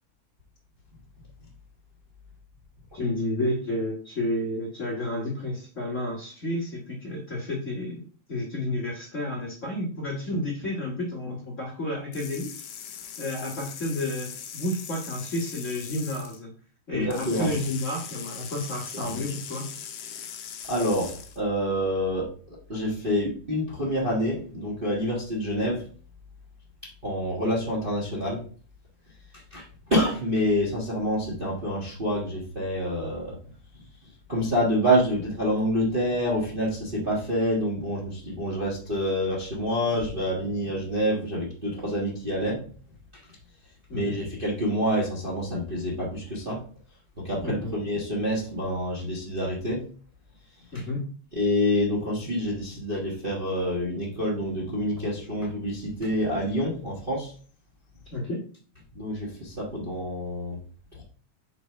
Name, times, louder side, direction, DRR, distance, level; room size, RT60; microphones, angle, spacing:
voice 1, 2.9-8.0 8.3-12.5 13.2-16.5 16.9-19.7 43.9-44.2 47.4-47.7 50.7-51.1 58.1-58.4, left 1 dB, 50° left, -5 dB, 0.9 m, -31 dB
sound 1, 12.1-16.4 17.1-21.4, left 8 dB, 70° left, 1.6 m, -40 dB
voice 2, 16.9-17.5 18.9-19.2 20.7-25.8 27.0-28.4 29.5-29.6 29.9-33.4 34.3-42.6 43.9-46.6 47.2-49.8 50.7-50.8 51.3-57.3 58.9-60.6 61.0-61.1, equal, 70° right, -4 dB, 0.5 m, -27 dB
5.1 x 4.2 x 5.8 m, 0.43 s
omnidirectional pair, 3.8 m